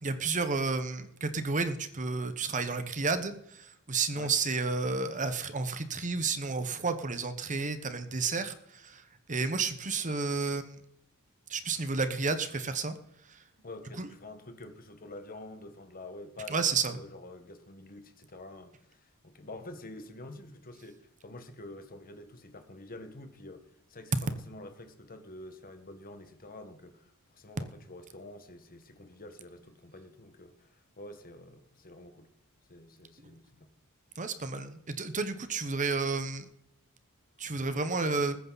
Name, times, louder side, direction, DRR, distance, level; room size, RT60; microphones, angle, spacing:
voice 1, 0.0-10.8 11.5-12.9 13.2-13.4 14.0-14.1 16.5-17.0 34.2-36.4 37.4-38.4, right 4 dB, 35° right, 1.1 m, -31 dB
voice 2, 13.6-32.3 32.7-33.7, left 2 dB, 40° left, 1.6 m, -48 dB
20.0 x 9.5 x 4.1 m
head